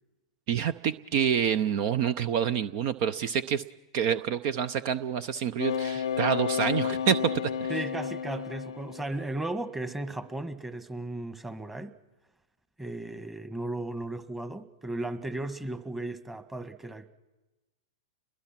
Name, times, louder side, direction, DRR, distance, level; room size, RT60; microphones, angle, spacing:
voice 1, 0.5-3.6 3.9-7.7, right 8 dB, 50° right, 15 dB, 0.7 m, -27 dB
sound 1, 5.6-9.4 9.9-10.2, left 7 dB, 85° left, 0.7 m, -32 dB
voice 2, 7.7-11.9 12.8-17.1, right 2 dB, 10° right, 10 dB, 1.4 m, -35 dB
30.0 x 22.0 x 6.0 m, 1.1 s
hypercardioid pair, 110°, 3 cm